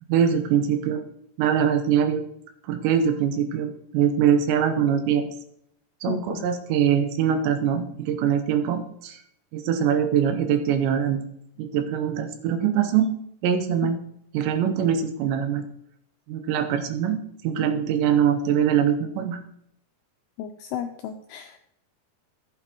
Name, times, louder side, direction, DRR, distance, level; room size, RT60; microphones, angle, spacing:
voice 1, 0.1-1.0 1.4-2.3 2.7-5.3 6.0-9.2 9.5-11.2 11.6-13.1 13.4-14.0 14.3-15.7 16.3-17.2 17.4-19.4, right 8 dB, 80° right, 7 dB, 3.1 m, -23 dB
voice 2, 6.1-6.5 13.8-13.9 20.4-21.6, left 9 dB, 85° left, 5 dB, 2.3 m, -34 dB
14.5 x 8.4 x 3.0 m, 0.71 s
omnidirectional pair, 5.3 m